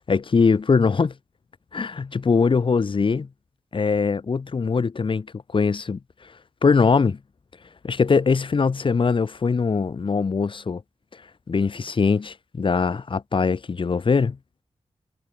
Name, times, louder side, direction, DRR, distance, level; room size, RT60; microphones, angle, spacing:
voice 1, 0.1-1.1 1.7-3.3 3.7-5.3 5.5-6.3 6.6-7.2 7.8-10.8 11.1-11.2 11.5-14.4, left 5 dB, 50° left, 2.5 m, -22 dB
wide cardioid pair, 150°, 11 cm